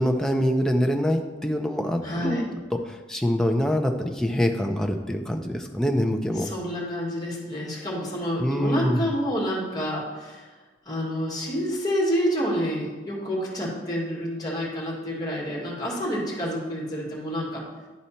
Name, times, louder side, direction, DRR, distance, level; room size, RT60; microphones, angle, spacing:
voice 1, 0.0-2.5 2.9-6.5 8.4-9.1, equal, 5° left, 3 dB, 0.5 m, -25 dB
voice 2, 2.0-2.4 6.4-10.5 10.9-17.6, equal, 20° left, -4 dB, 2.2 m, -28 dB
11.5 x 4.1 x 4.3 m, 1.3 s
head